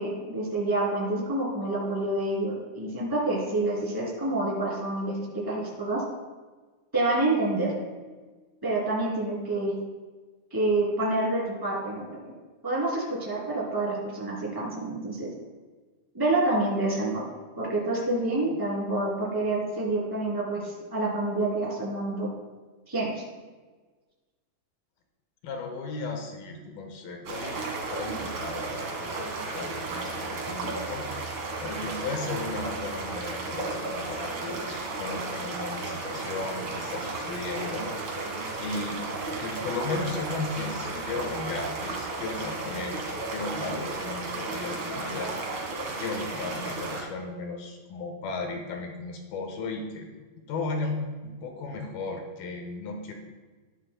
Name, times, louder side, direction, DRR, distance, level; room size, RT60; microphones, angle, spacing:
voice 1, 0.0-6.0 6.9-7.7 8.6-9.7 10.5-12.3 12.6-15.3 16.1-17.2 17.6-22.3 22.9-23.2, right 2 dB, 5° right, -5 dB, 2.1 m, -28 dB
voice 2, 25.4-27.6 27.9-29.2 29.5-31.1 31.6-37.9 38.6-39.0 39.3-45.4 46.0-50.1 50.5-53.1, left 3 dB, 75° left, 3 dB, 2.8 m, -35 dB
sound 1, 27.2-47.0, right 3 dB, 55° right, 1.4 m, -34 dB
13.5 x 11.0 x 2.2 m, 1.3 s
omnidirectional pair, 4.5 m